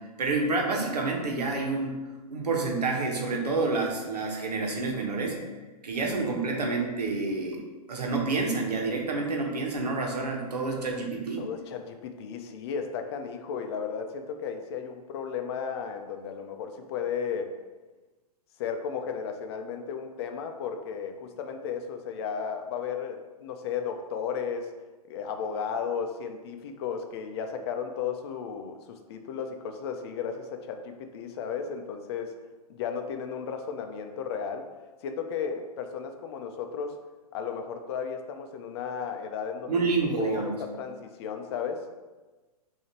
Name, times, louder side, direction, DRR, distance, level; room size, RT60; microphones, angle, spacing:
voice 1, 0.2-2.0 2.3-5.4 5.8-7.6 7.9-11.4 39.7-40.5, right 3 dB, 80° right, 0 dB, 1.2 m, -28 dB
voice 2, 11.4-17.5 18.6-24.7 25.1-32.3 32.7-34.7 35.0-36.9 37.3-39.8 40.2-42.0, left 6 dB, 40° left, 5 dB, 0.5 m, -34 dB
6.4 x 2.8 x 2.9 m, 1.2 s
hypercardioid pair, 130°, 20 cm